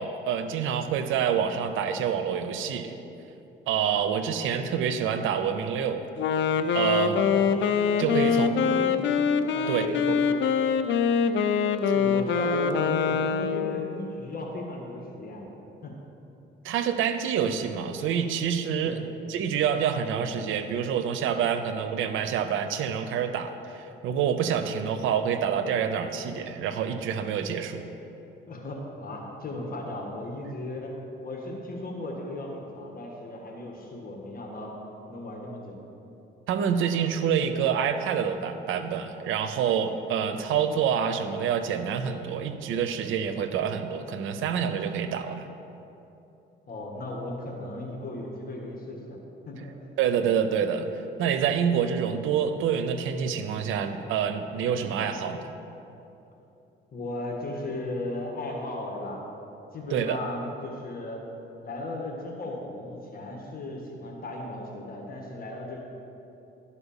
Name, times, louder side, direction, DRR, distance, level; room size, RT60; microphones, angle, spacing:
voice 1, 0.0-2.9 3.7-6.0 6.7-7.2 8.0-8.5 9.7-9.9 11.9-12.0 16.6-27.9 36.5-45.5 50.0-50.9 51.2-55.4 59.9-60.2, right 7 dB, 85° right, 9 dB, 0.6 m, -27 dB
Wind instrument woodwind instrument, 6.2-14.1, left 6 dB, 70° left, 0.5 m, -24 dB
voice 2, 8.2-9.1 9.5-10.4 11.9-15.4 15.8-16.0 18.8-19.1 28.5-30.9 31.2-34.7 35.1-35.8 46.7-49.2 49.5-49.7 56.9-59.2 59.7-61.2 61.6-65.8, left 2 dB, 45° left, 0 dB, 1.5 m, -36 dB
11.5 x 4.2 x 7.1 m, 2.9 s
cardioid pair, 90°, 20 cm